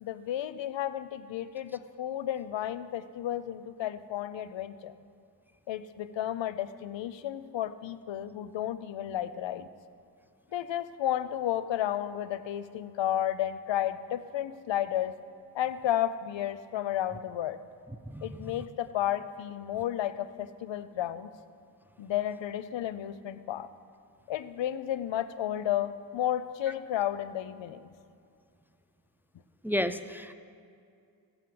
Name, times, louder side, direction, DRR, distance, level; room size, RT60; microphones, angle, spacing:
voice 1, 0.0-4.9 5.7-9.7 10.5-15.1 15.5-17.6 18.2-21.3 22.0-23.7 24.3-27.9, left 11 dB, 80° left, 14 dB, 0.6 m, -32 dB
voice 2, 29.6-30.3, equal, 5° right, 10 dB, 0.4 m, -31 dB
16.0 x 6.3 x 7.7 m, 2.4 s
cardioid pair, 65°, 44 cm